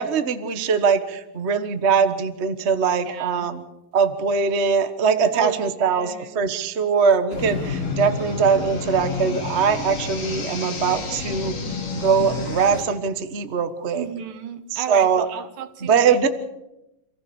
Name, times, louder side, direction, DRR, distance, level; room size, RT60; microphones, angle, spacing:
voice 1, 0.0-3.6 3.9-11.5 12.0-14.0 14.7-15.2 15.8-16.3, right 6 dB, 65° right, 10 dB, 0.6 m, -21 dB
voice 2, 3.1-3.5 5.3-6.5 13.9-16.2, right 9 dB, 90° right, 10 dB, 3.1 m, -32 dB
sound 1, 7.3-12.8, left 4 dB, 75° left, 5.4 m, -29 dB
28.0 x 15.5 x 7.1 m, 0.91 s
omnidirectional pair, 3.7 m